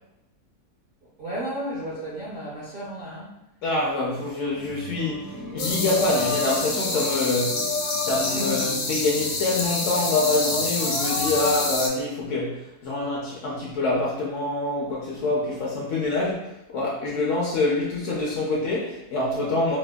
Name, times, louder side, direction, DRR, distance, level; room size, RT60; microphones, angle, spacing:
voice 1, 1.2-3.3 8.3-8.6, equal, 50° right, -7 dB, 0.7 m, -33 dB
voice 2, 3.6-7.7 8.0-19.8, left 2 dB, 65° left, -4 dB, 0.8 m, -26 dB
sound 1, 4.5-11.8, left 3 dB, 75° right, 1.7 m, -33 dB
sound 2, 5.6-11.9, left 3 dB, 85° left, 1.3 m, -28 dB
4.2 x 2.2 x 2.2 m, 0.91 s
omnidirectional pair, 1.7 m